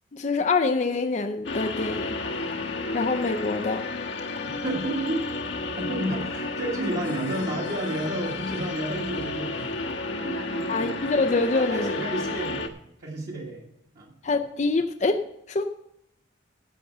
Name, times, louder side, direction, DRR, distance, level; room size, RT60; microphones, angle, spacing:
voice 1, 0.1-2.2 2.9-3.8 10.7-11.9 14.2-15.6, left 3 dB, 35° left, 7 dB, 0.5 m, -25 dB
sound 1, 1.4-12.7, left 3 dB, 65° left, 1.1 m, -32 dB
voice 2, 4.6-9.8 10.2-10.9 11.5-12.7 13.0-13.7 13.9-14.1, right 1 dB, 50° right, -4 dB, 1.8 m, -31 dB
11.0 x 7.6 x 6.7 m, 0.79 s
head